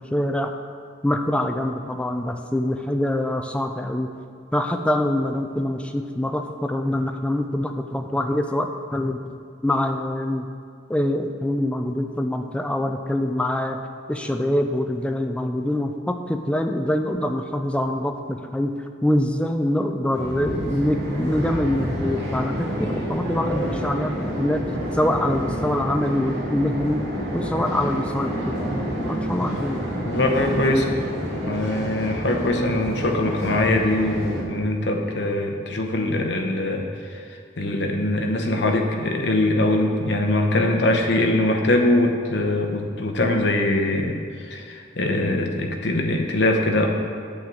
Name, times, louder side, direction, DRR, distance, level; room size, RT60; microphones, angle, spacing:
voice 1, 0.1-0.5 1.0-4.1 4.5-9.2 9.6-10.5 10.9-13.8 14.1-24.6 24.9-27.0 27.3-28.8 29.1-29.8, left 1 dB, 5° left, 5 dB, 0.3 m, -24 dB
sound 1, 20.1-34.4, equal, 70° right, 2.1 m, -28 dB
voice 2, 30.0-30.9 31.3-36.8 37.6-44.2 44.5-46.9, left 1 dB, 65° left, 2 dB, 0.9 m, -22 dB
8.6 x 7.4 x 3.9 m, 2.4 s
head